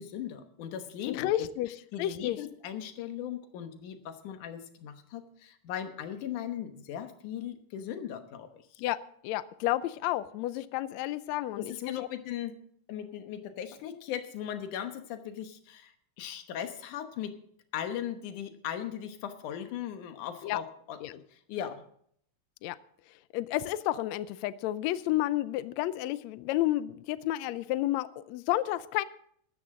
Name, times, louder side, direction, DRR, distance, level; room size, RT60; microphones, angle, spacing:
voice 1, 0.0-1.3 1.9-8.8 11.6-12.6 12.9-15.9 16.2-17.3 17.7-21.2 21.5-21.8, left 10 dB, 70° left, 8 dB, 2.5 m, -38 dB
voice 2, 1.1-1.7 2.0-2.4 8.8-9.0 9.2-12.1 20.4-20.6 21.0-21.1 22.6-22.8 23.3-29.0, left 15 dB, 85° left, 15 dB, 1.5 m, -31 dB
15.5 x 13.0 x 3.8 m, 0.64 s
omnidirectional pair, 3.9 m